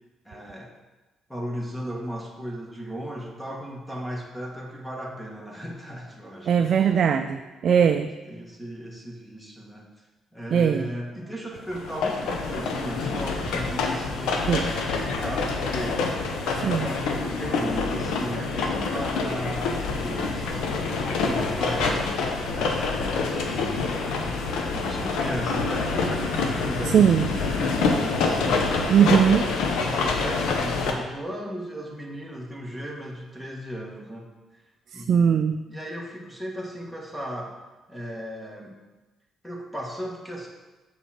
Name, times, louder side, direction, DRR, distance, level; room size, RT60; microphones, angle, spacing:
voice 1, 0.2-0.7 1.3-6.7 7.8-9.9 10.3-16.1 16.4-22.1 22.5-23.4 24.0-28.7 29.0-34.6 34.9-35.4 35.7-37.6 37.9-38.8 39.4-40.5, equal, 5° left, -1 dB, 1.6 m, -36 dB
voice 2, 6.5-8.1 10.5-10.9 14.5-14.7 16.6-16.9 26.9-27.3 28.9-29.4 34.9-35.6, right 7 dB, 60° right, 6 dB, 0.3 m, -20 dB
sound 1, 11.7-30.9, left 4 dB, 90° left, 0.9 m, -26 dB
7.4 x 5.5 x 4.4 m, 1.2 s
cardioid pair, 90°, 0 cm